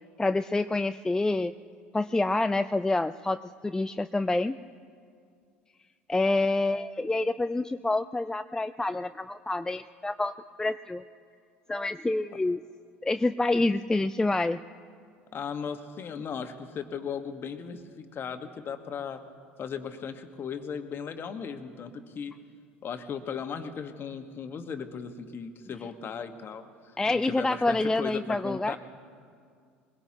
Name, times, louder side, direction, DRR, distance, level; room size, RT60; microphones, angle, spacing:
voice 1, 0.2-1.5 1.9-4.6 6.1-10.3 10.6-11.0 11.7-12.6 13.0-14.6 27.0-28.8, left 2 dB, 10° left, 12 dB, 0.4 m, -27 dB
voice 2, 15.3-19.2 19.6-22.3 22.8-27.0 27.2-28.8, left 6 dB, 40° left, 8 dB, 1.3 m, -37 dB
22.0 x 22.0 x 2.9 m, 2.2 s
figure-of-eight pair, 65°, 6 cm